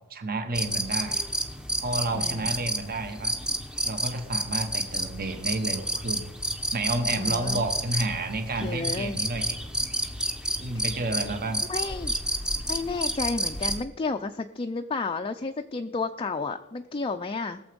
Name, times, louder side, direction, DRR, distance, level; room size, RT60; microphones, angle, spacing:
voice 1, 0.1-1.2 1.8-3.3 3.8-6.3 6.7-9.6 10.6-11.6, right 2 dB, 45° right, 7 dB, 1.2 m, -30 dB
sound 1, 0.5-13.8, right 1 dB, 5° right, 0.7 m, -30 dB
voice 2, 2.1-2.5 7.2-7.6 8.6-9.2 10.7-10.8 11.7-12.1 12.7-17.6, left 3 dB, 25° left, 5 dB, 0.4 m, -32 dB
19.5 x 7.0 x 5.3 m, 1.1 s
head